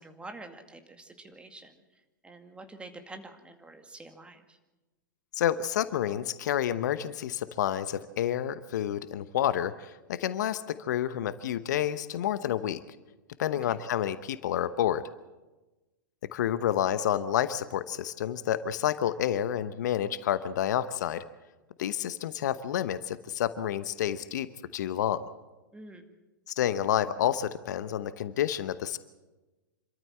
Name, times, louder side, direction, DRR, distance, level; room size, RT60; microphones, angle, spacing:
voice 1, 0.0-1.7 2.2-4.6 13.7-13.8 25.7-26.0, right 2 dB, 10° right, 6 dB, 2.1 m, -47 dB
voice 2, 5.3-12.8 13.4-15.0 16.3-21.2 21.8-25.2 26.5-29.0, left 11 dB, 60° left, 13 dB, 1.0 m, -29 dB
26.5 x 13.5 x 7.8 m, 1.1 s
figure-of-eight pair, 105°, 11 cm